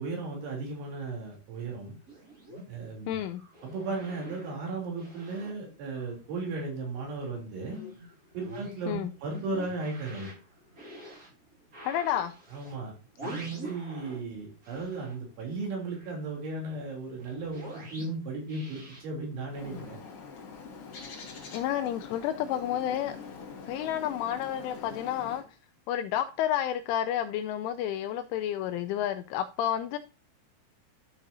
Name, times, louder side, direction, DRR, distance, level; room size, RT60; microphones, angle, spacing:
voice 1, 0.0-2.0 2.7-3.1 3.6-7.8 8.3-10.3 12.5-12.9 13.2-20.0, right 3 dB, 65° right, 5.3 m, -36 dB
sound 1, 1.7-6.4 6.7-14.3 14.6-19.8, right 1 dB, 30° right, 1.8 m, -46 dB
voice 2, 3.1-3.4 8.9-9.1 11.9-12.3 21.5-23.2 23.7-25.4 25.9-30.0, left 11 dB, 85° left, 2.8 m, -30 dB
Bird, 19.5-25.4, left 5 dB, 50° left, 1.7 m, -44 dB
12.5 x 6.4 x 2.6 m
omnidirectional pair, 5.9 m